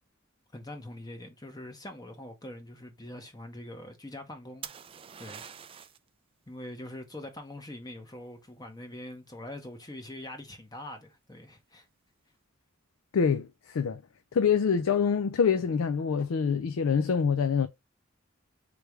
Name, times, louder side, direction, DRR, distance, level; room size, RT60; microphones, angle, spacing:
voice 1, 0.5-4.7 5.2-5.5 6.5-11.9, left 1 dB, 20° left, 0.8 m, -43 dB
sound 1, 4.6-6.1 9.8-10.2, right 8 dB, 25° right, 0.3 m, -45 dB
voice 2, 13.1-14.0 14.3-17.7, left 6 dB, 75° left, 0.4 m, -25 dB
3.4 x 3.3 x 4.5 m
head